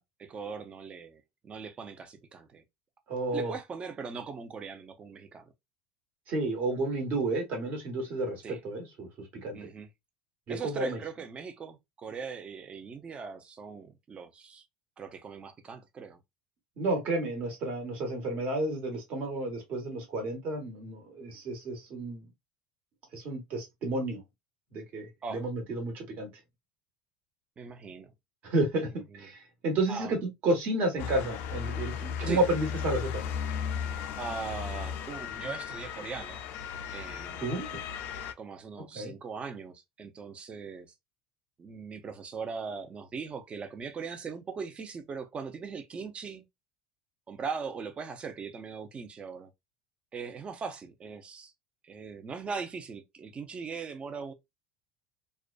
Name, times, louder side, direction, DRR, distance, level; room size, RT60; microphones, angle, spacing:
voice 1, 0.0-2.6 3.3-5.5 8.4-8.6 9.5-9.9 10.5-14.6 15.0-16.2 25.2-25.4 27.6-28.1 29.1-29.3 29.9-30.1 32.2-32.4 34.2-36.4 36.9-37.5 38.4-40.9 41.6-46.4 47.3-49.5 50.1-51.5 51.8-54.3, right 5 dB, 30° right, 0.5 m, -40 dB
voice 2, 3.1-3.5 6.3-9.6 10.5-11.0 16.8-22.2 23.1-24.2 24.7-26.3 28.4-33.2 37.4-37.8 38.9-39.1, right 2 dB, 50° right, 1.2 m, -31 dB
Motor vehicle (road) / Siren, 31.0-38.3, left 8 dB, 60° left, 0.4 m, -36 dB
2.4 x 2.2 x 2.3 m
hypercardioid pair, 85°, 4 cm